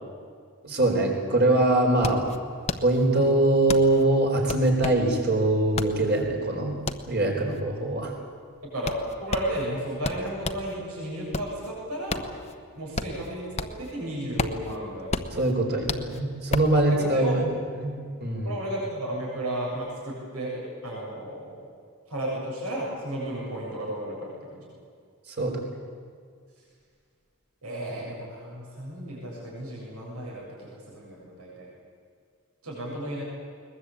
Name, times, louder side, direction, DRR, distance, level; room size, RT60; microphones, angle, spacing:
voice 1, 0.6-2.2 2.8-6.8 7.1-8.1 15.3-17.4 17.8-17.9 18.2-18.5 25.4-25.6, right 2 dB, 50° right, 1 dB, 4.4 m, -23 dB
sound 1, 1.1-1.2 1.4-10.7 11.1-13.9 14.2-16.8, left 3 dB, 30° left, 0.9 m, -33 dB
voice 2, 8.6-12.3 12.7-15.4 17.0-17.3 18.2-21.7 22.1-24.6 27.6-31.7 32.6-33.2, right 1 dB, 80° right, -4 dB, 7.4 m, -34 dB
21.0 x 21.0 x 8.5 m, 2.1 s
head